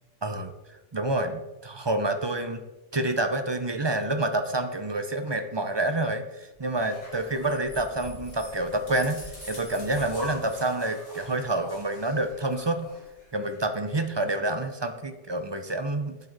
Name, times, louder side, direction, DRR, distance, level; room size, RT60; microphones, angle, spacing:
voice 1, 0.2-2.6 2.9-12.9 13.3-16.2, right 2 dB, 30° right, 8 dB, 0.5 m, -28 dB
sound 1, 6.7-13.6, left 1 dB, 70° left, 3.5 m, -43 dB
9.3 x 7.9 x 4.0 m, 1.1 s
omnidirectional pair, 1.3 m